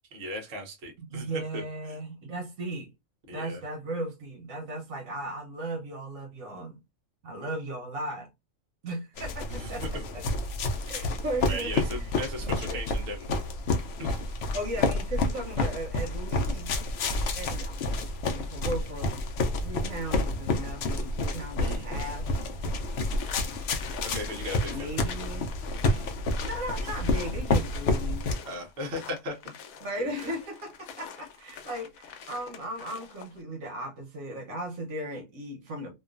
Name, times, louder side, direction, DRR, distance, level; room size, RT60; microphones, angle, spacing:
voice 1, 0.1-1.3 1.5-1.6 1.9-2.0 3.3-3.6 9.5-10.0 11.5-13.4 14.0-14.3 21.6-21.9 24.0-25.0 25.8-26.2 28.4-29.5 30.0-30.1, equal, 55° right, 1.0 m, -37 dB
voice 2, 1.0-2.9 3.3-6.8 7.2-8.3 8.8-10.2 10.8-12.1 12.4-12.8 14.5-16.7 17.3-19.2 19.6-22.4 24.7-25.5 26.4-28.3 29.8-35.9, right 1 dB, 75° right, 1.2 m, -37 dB
sound 1, 9.2-28.4, left 2 dB, 65° left, 0.7 m, -29 dB
sound 2, 23.1-33.4, left 7 dB, 90° left, 1.0 m, -46 dB
2.9 x 2.3 x 2.4 m
omnidirectional pair, 1.4 m